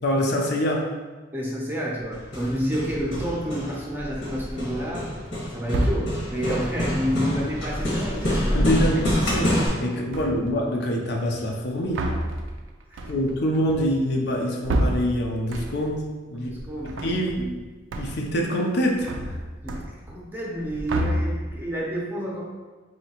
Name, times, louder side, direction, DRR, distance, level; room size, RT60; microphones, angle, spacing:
voice 1, 0.0-0.9 8.5-12.1 13.0-16.5 17.0-17.4 18.0-19.4, equal, 60° left, 0 dB, 0.5 m, -25 dB
voice 2, 1.3-5.1 5.5-8.5 8.8-9.0 12.9-13.0 16.3-17.0 17.4-17.6 19.6-19.8 20.1-22.5, equal, 10° right, -3 dB, 0.6 m, -29 dB
Hammer, 2.1-9.7, equal, 90° left, 1.3 m, -27 dB
sound 1, 3.1-3.6 4.4-4.9 5.6-6.4 9.0-9.8 10.1-10.6 11.5-16.0 16.4-17.6 17.9-18.4 18.7-20.3 20.5-21.7, right 1 dB, 90° right, 0.4 m, -30 dB
4.2 x 2.8 x 2.9 m, 1.3 s
head